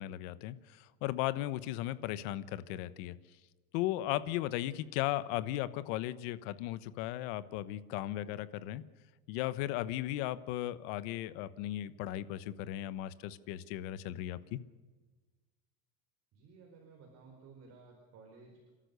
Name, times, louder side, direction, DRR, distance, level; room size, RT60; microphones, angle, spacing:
voice 1, 0.0-3.2 3.7-8.8 9.3-14.6, left 14 dB, 65° left, 15 dB, 1.2 m, -36 dB
voice 2, 16.3-18.7, right 4 dB, 40° right, 1 dB, 4.5 m, -56 dB
30.0 x 13.0 x 6.9 m, 1.3 s
cardioid pair, 175°, 39 cm